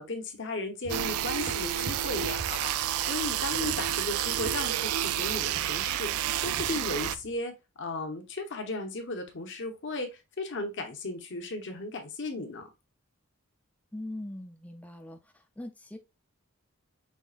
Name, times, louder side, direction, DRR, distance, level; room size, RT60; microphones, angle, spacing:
voice 1, 0.0-12.6, left 2 dB, 60° left, 1.1 m, -36 dB
sound 1, 0.8-7.4, right 2 dB, 40° right, 0.8 m, -45 dB
sound 2, 0.9-7.2, right 11 dB, 85° right, 0.3 m, -30 dB
voice 2, 13.9-16.0, left 1 dB, 5° left, 0.5 m, -41 dB
5.6 x 3.5 x 2.4 m
head